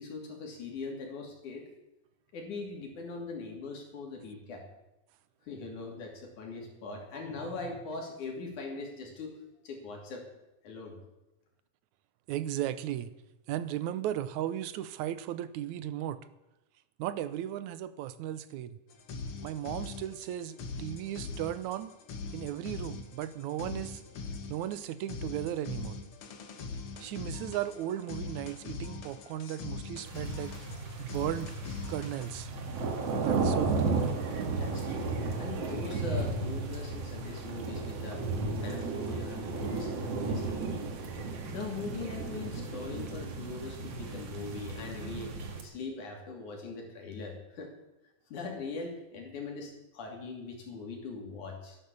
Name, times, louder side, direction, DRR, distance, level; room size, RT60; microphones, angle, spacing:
voice 1, 0.0-1.6 2.3-4.6 5.5-9.3 9.6-10.2 10.6-10.9 34.6-38.2 38.6-40.0 40.3-40.7 41.5-47.7 48.3-51.8, left 4 dB, 90° left, 1 dB, 4.4 m, -41 dB
voice 2, 12.3-13.1 13.5-16.2 17.0-18.8 19.4-21.9 22.3-24.0 24.5-26.0 27.0-30.5 31.0-31.5 31.9-32.5 33.2-34.0, right 12 dB, 85° right, 14 dB, 2.1 m, -36 dB
sound 1, 18.9-32.4, left 4 dB, 55° left, 2.0 m, -42 dB
sound 2, 30.1-45.6, right 3 dB, 55° right, 2.7 m, -34 dB
13.5 x 10.5 x 7.0 m, 0.99 s
omnidirectional pair, 3.4 m